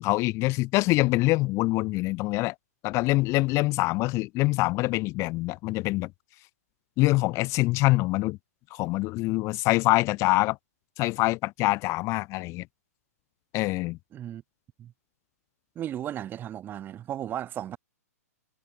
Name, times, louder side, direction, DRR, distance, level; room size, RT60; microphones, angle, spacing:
voice 1, 0.0-2.5 2.8-6.1 7.0-8.4 8.7-10.6 11.0-12.6 13.5-14.0, left 21 dB, 35° left, 2.9 m, -25 dB
voice 2, 14.1-14.4 14.8-14.9 15.8-17.8, right 11 dB, 25° right, 2.6 m, -35 dB
hypercardioid pair, 120°, 9 cm